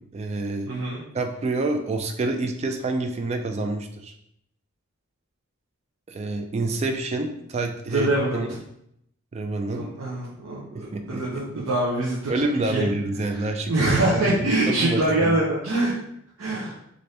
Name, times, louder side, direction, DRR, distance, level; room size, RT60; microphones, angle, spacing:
voice 1, 0.1-0.7 1.1-4.1 6.1-8.5 9.3-9.9 10.7-11.2 11.6-11.7 12.3-15.3, right 2 dB, 30° right, 5 dB, 0.3 m, -28 dB
voice 2, 0.7-1.0 7.9-8.6 9.7-12.3 12.7-12.9 13.3-15.9 16.4-16.7, right 1 dB, 80° right, -6 dB, 0.6 m, -24 dB
3.2 x 2.5 x 2.7 m, 0.75 s
head